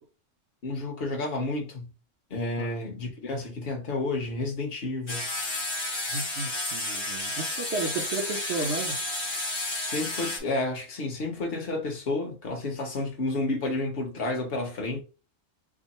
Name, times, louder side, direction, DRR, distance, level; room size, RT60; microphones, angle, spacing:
voice 1, 0.6-1.9 2.3-5.3 9.9-15.0, left 2 dB, 50° left, 1.1 m, -31 dB
sound 1, 5.1-10.4, left 2 dB, 25° left, 0.7 m, -31 dB
voice 2, 6.1-9.0, right 3 dB, 60° right, 1.0 m, -33 dB
3.7 x 2.1 x 4.1 m
omnidirectional pair, 1.3 m